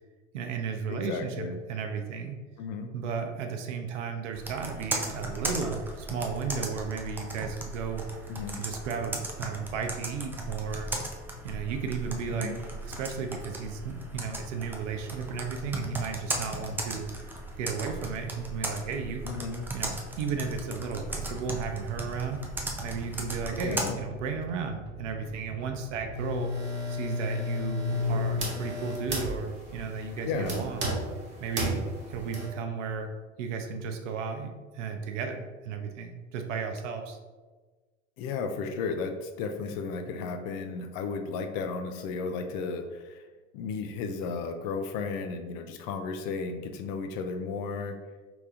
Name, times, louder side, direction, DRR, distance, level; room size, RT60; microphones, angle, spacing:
voice 1, 0.3-2.4 2.9-8.1 8.5-10.9 11.4-12.5 12.8-17.3 17.6-19.3 19.7-22.4 22.8-26.5 26.9-30.9 31.4-33.1 33.4-37.2, right 5 dB, 70° right, 5 dB, 0.6 m, -34 dB
voice 2, 0.9-1.5 2.6-2.9 8.3-8.6 12.3-12.6 19.2-19.7 23.6-24.0 30.2-30.7 38.2-43.3 43.5-48.0, left 4 dB, 50° left, 6 dB, 0.6 m, -34 dB
Computer keyboard, 4.4-23.9, right 1 dB, 5° right, 0.3 m, -37 dB
sound 1, 21.1-26.4, right 2 dB, 45° right, 0.9 m, -44 dB
sound 2, 26.1-32.5, left 1 dB, 30° right, 1.3 m, -33 dB
3.3 x 3.0 x 3.6 m, 1.3 s
figure-of-eight pair, 75°, 38 cm